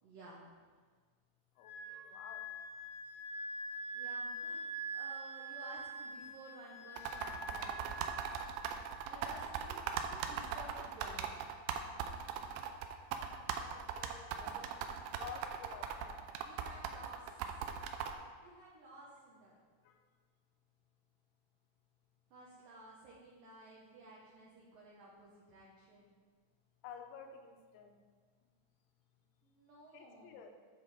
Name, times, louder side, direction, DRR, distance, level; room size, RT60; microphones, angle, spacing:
voice 1, 0.0-0.6 3.9-4.6 4.9-8.5 9.1-9.8 10.1-11.4 16.4-17.8 18.4-19.6 22.3-26.1 29.4-30.4, right 2 dB, 70° right, -5 dB, 2.2 m, -54 dB
voice 2, 1.6-2.5 13.6-16.2 19.8-20.0 26.8-28.0 29.9-30.5, left 7 dB, 85° left, 5 dB, 3.2 m, -52 dB
Wind instrument woodwind instrument, 1.6-9.1, right 1 dB, 55° left, 1.4 m, -44 dB
sound 1, 7.0-18.1, right 8 dB, 90° right, 2.3 m, -39 dB
8.3 x 7.2 x 4.2 m, 1.6 s
omnidirectional pair, 5.3 m